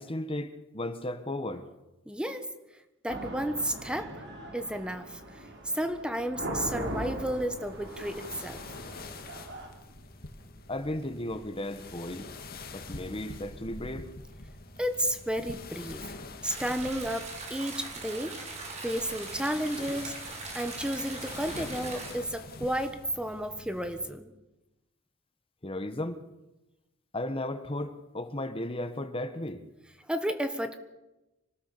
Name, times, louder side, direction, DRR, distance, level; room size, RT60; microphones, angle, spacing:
voice 1, 0.0-1.7 10.7-12.3 12.7-14.1 25.6-26.2 27.1-29.6, left 1 dB, 25° left, 10 dB, 1.5 m, -35 dB
voice 2, 2.1-2.5 3.0-4.2 4.5-5.5 5.7-8.6 14.8-16.1 16.4-18.4 18.8-20.1 20.5-24.3 30.1-30.8, equal, 5° right, 8 dB, 1.3 m, -32 dB
sound 1, 3.1-9.7, right 1 dB, 60° right, 5.2 m, -40 dB
sound 2, 6.6-24.1, left 2 dB, 50° left, 2.3 m, -46 dB
sound 3, 16.4-22.1, right 3 dB, 35° right, 5.6 m, -41 dB
26.0 x 19.0 x 6.9 m, 1.0 s
head